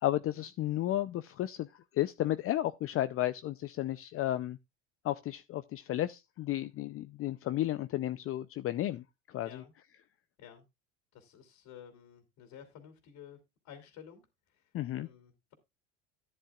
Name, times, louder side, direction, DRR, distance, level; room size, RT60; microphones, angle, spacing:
voice 1, 0.0-4.6 5.0-9.6 14.7-15.1, left 14 dB, 40° left, 0.6 m, -33 dB
voice 2, 11.1-13.4 13.6-14.2 14.5-14.6 14.9-15.5, left 9 dB, 55° left, 2.9 m, -52 dB
13.0 x 10.0 x 2.4 m
supercardioid pair, 95°, 35 cm